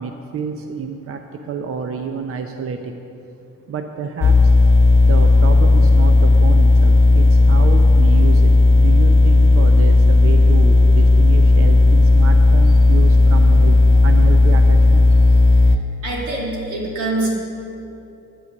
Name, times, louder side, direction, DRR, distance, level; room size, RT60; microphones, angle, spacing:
voice 1, 0.0-3.0 3.7-4.5 5.0-13.8 14.0-15.1, right 6 dB, 50° right, 6 dB, 0.6 m, -29 dB
sound 1, 4.2-15.8, left 2 dB, 45° left, 0.5 m, -12 dB
voice 2, 16.0-17.3, right 2 dB, 85° right, -4 dB, 2.6 m, -24 dB
9.2 x 5.7 x 8.2 m, 2.9 s
cardioid pair, 90°, 30 cm